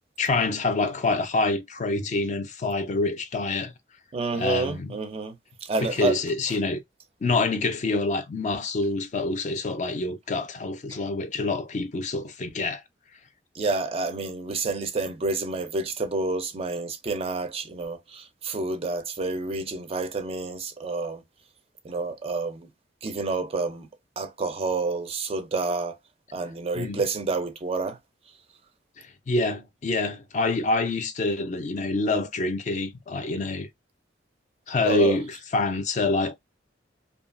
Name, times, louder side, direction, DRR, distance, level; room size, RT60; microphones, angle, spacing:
voice 1, 0.2-3.7 4.3-4.9 5.8-6.8 7.2-12.8 26.7-27.0 29.0-33.7 34.7-36.4, left 3 dB, 40° left, 0.4 m, -26 dB
voice 2, 4.1-5.3 5.7-6.1 10.9-11.0 13.5-21.2 21.8-22.7 23.0-23.9 24.2-26.0 26.3-28.0 34.8-35.2, right 3 dB, 30° right, 0.4 m, -29 dB
2.7 x 2.3 x 2.4 m
head